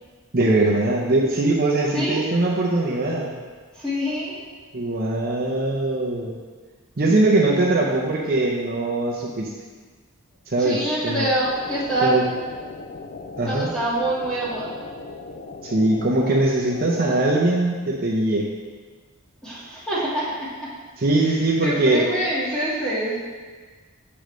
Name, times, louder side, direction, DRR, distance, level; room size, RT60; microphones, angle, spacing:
voice 1, 0.3-3.3 4.7-6.4 7.0-9.5 10.5-10.8 11.0-11.2 12.0-12.2 13.4-13.7 15.6-18.5 21.0-22.1, right 2 dB, 40° right, -4 dB, 0.7 m, -21 dB
voice 2, 1.9-2.2 3.7-4.3 7.0-7.4 10.6-12.1 13.5-14.7 19.4-20.7 21.3-23.2, right 1 dB, 5° left, -9 dB, 1.7 m, -26 dB
sound 1, 11.4-17.2, left 3 dB, 40° left, 0.4 m, -38 dB
8.5 x 5.1 x 3.2 m, 1.5 s
head